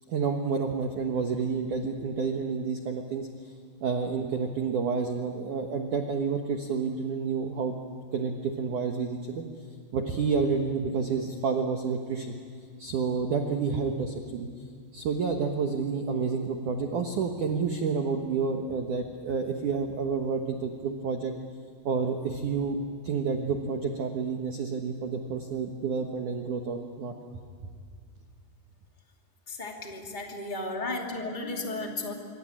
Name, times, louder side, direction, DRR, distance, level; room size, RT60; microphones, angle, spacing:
voice 1, 0.1-3.5 3.8-7.8 8.1-9.4 9.9-12.4 12.8-14.5 14.9-21.3 21.9-22.8 23.0-27.1, right 5 dB, 85° right, 4 dB, 1.7 m, -29 dB
voice 2, 29.5-32.1, left 2 dB, 40° left, 1 dB, 0.6 m, -34 dB
26.0 x 25.0 x 8.7 m, 2.1 s
omnidirectional pair, 5.9 m